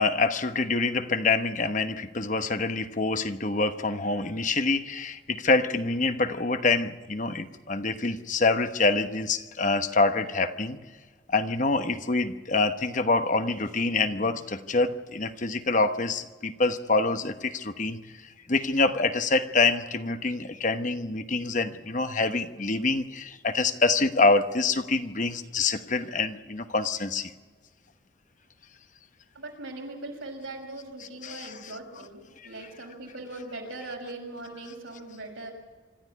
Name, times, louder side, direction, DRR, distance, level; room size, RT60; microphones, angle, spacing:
voice 1, 0.0-10.8 11.3-18.0 18.5-27.3 31.2-31.7 32.4-32.5, left 3 dB, 40° left, 1.1 m, -26 dB
voice 2, 29.3-35.5, right 2 dB, 90° right, 5.9 m, -40 dB
26.0 x 13.5 x 9.6 m
head